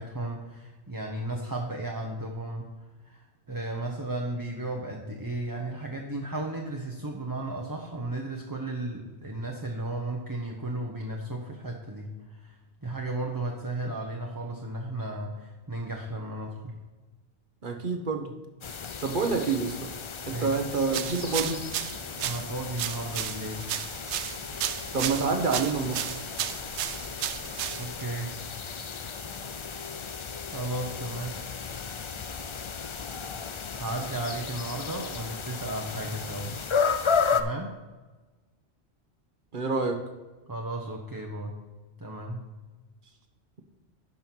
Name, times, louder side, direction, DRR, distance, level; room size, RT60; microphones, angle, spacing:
voice 1, 0.0-2.7 3.0-16.8 20.3-20.6 22.2-23.7 27.8-28.4 30.5-31.4 33.7-36.6 37.3-37.8 40.5-41.6 42.0-42.5, right 2 dB, 20° right, 0 dB, 0.9 m, -34 dB
voice 2, 17.6-18.3 19.0-19.9 20.3-21.6 24.9-26.0 39.5-40.0, right 4 dB, 50° right, 5 dB, 1.2 m, -27 dB
sound 1, 18.6-37.4, left 6 dB, 45° left, 0.4 m, -34 dB
sound 2, 20.9-28.1, right 11 dB, 90° right, 0.9 m, -34 dB
11.0 x 5.6 x 4.5 m, 1.2 s
omnidirectional pair, 1.1 m